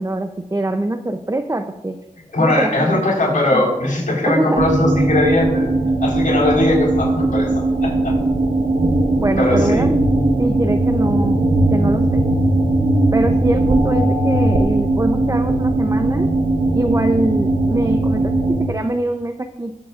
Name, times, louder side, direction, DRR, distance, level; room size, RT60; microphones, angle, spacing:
voice 1, 0.0-2.0 2.4-3.1 3.5-3.6 4.3-4.6 9.2-9.9 10.4-11.4 11.7-12.2 13.1-16.3 16.7-19.8, right 1 dB, 25° right, 7 dB, 0.6 m, -23 dB
voice 2, 2.3-5.7 6.0-8.2 9.4-9.8, left 2 dB, 70° left, -3 dB, 4.3 m, -19 dB
sound 1, 4.6-18.7, right 2 dB, 80° right, 1.4 m, -18 dB
21.5 x 7.7 x 2.5 m, 0.96 s
wide cardioid pair, 50°, 14 cm